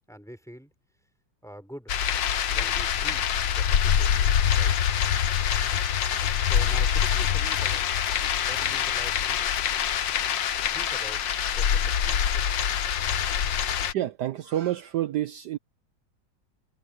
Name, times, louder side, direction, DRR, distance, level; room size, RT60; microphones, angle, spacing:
voice 1, 0.1-0.7 1.4-2.0 2.5-4.8 6.3-8.1 8.4-9.6 10.7-12.6, equal, ahead, 3.9 m, -46 dB
sound 1, 1.9-13.9, left 9 dB, 85° left, 1.8 m, -25 dB
voice 2, 13.9-15.6, right 13 dB, 70° right, 1.3 m, -28 dB
omnidirectional pair, 2.0 m